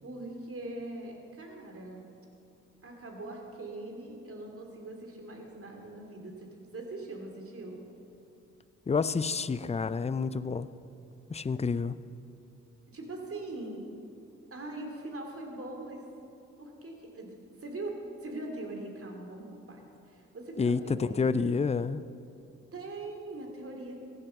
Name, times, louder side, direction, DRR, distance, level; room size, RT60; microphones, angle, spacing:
voice 1, 0.0-2.0 2.8-7.8 12.9-13.8 14.5-16.1 16.6-17.3 17.6-21.6 22.7-24.0, right 2 dB, 45° right, 1 dB, 3.2 m, -41 dB
voice 2, 8.9-10.7 11.3-11.9 20.6-22.0, left 5 dB, 20° left, 16 dB, 0.5 m, -29 dB
15.0 x 11.0 x 5.9 m, 2.7 s
supercardioid pair, 50°, 32 cm